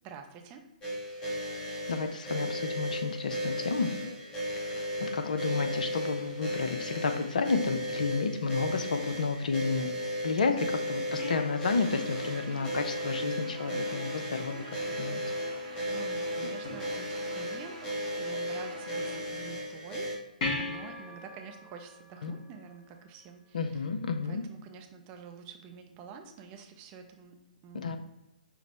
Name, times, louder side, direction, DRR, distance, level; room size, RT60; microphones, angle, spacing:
voice 1, 0.0-0.7 15.9-17.1 17.4-17.8 18.2-20.1 20.6-23.9 24.2-27.4 27.6-28.0, right 6 dB, 25° right, 4 dB, 0.5 m, -47 dB
sound 1, 0.8-20.2, equal, 15° left, 0.8 m, -35 dB
voice 2, 1.9-4.2 4.6-9.9 10.2-14.6 14.9-15.2 22.2-22.3 23.5-24.4 27.7-28.0, left 4 dB, 60° left, 7 dB, 0.4 m, -31 dB
sound 2, 11.2-13.8 16.6-17.6 20.4-23.3 26.4-26.5, left 2 dB, 40° left, 1.2 m, -40 dB
Guitar, 11.8-19.2, right 3 dB, 55° right, 0.8 m, -45 dB
5.8 x 2.0 x 4.1 m, 0.97 s
figure-of-eight pair, 125°, 5 cm